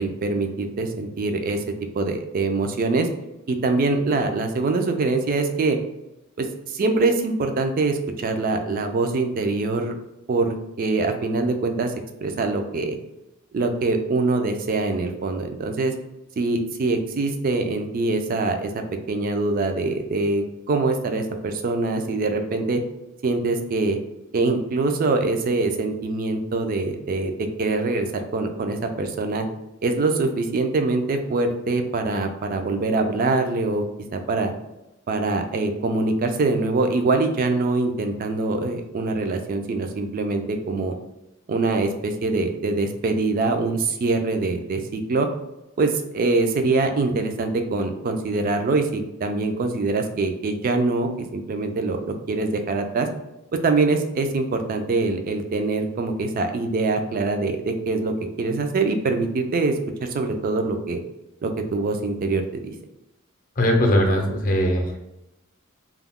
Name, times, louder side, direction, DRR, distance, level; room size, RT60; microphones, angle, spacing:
voice 1, 0.0-1.6 1.9-3.1 3.5-5.8 6.4-9.9 10.3-11.9 12.2-13.0 13.5-15.9 16.4-18.7 19.1-22.8 23.2-24.0 24.3-27.3 27.6-28.1 28.3-29.5 29.8-33.8 34.1-34.5 35.1-40.9 41.5-45.3 45.8-53.1 53.5-58.1 58.4-59.7 60.0-61.0 61.4-62.6, right 3 dB, 45° right, 6 dB, 0.3 m, -24 dB
voice 2, 63.6-65.0, equal, 45° left, 2 dB, 0.5 m, -20 dB
2.3 x 2.1 x 3.5 m, 0.93 s
head